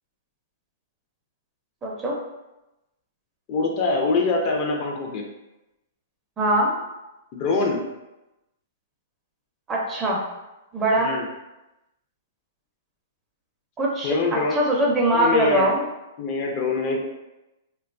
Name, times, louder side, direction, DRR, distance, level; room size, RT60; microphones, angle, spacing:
voice 1, 1.8-2.2 6.4-6.7 9.7-10.2 10.7-11.1 13.8-15.8, right 1 dB, 20° right, -2 dB, 0.5 m, -22 dB
voice 2, 3.5-5.3 7.3-7.8 11.0-11.3 14.0-14.6 15.1-15.7 16.2-17.1, left 3 dB, 40° left, 1 dB, 0.4 m, -24 dB
2.7 x 2.2 x 2.5 m, 0.97 s
hypercardioid pair, 135°, 0 cm